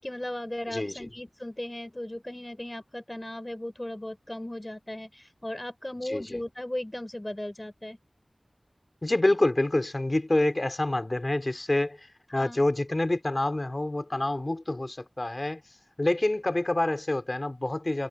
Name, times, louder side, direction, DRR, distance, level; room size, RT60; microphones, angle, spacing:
voice 1, 0.0-8.0 12.3-12.6, left 1 dB, 20° left, 5.0 m, -37 dB
voice 2, 0.7-1.1 6.0-6.4 9.0-15.6 16.0-18.1, left 2 dB, 40° left, 3.7 m, -27 dB
wide cardioid pair, 60°, 0 cm